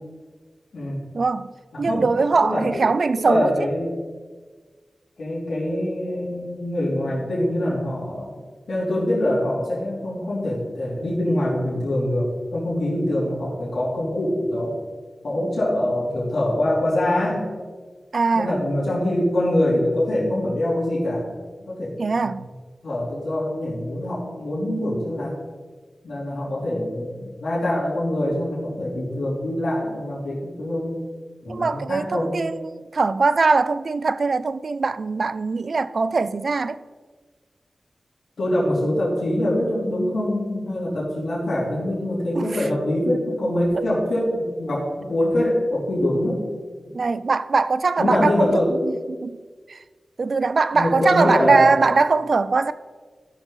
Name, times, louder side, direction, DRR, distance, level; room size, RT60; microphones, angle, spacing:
voice 1, 1.1-1.5 1.8-3.5 18.1-18.6 22.0-22.4 31.5-36.8 42.3-42.7 43.7-43.8 46.9-49.4 49.7-49.8 50.2-52.7, right 4 dB, 60° right, 0.4 m, -21 dB
voice 2, 1.7-2.1 2.4-2.8 3.2-3.9 5.2-8.3 8.7-14.8 15.2-17.5 18.3-21.3 21.7-22.0 22.2-22.4 22.8-25.3 26.0-30.9 31.4-32.4 38.4-46.4 46.9-47.0 48.0-48.8 50.7-51.7, left 1 dB, 75° left, 3.1 m, -24 dB
13.0 x 6.0 x 4.0 m
wide cardioid pair, 65°, 0 cm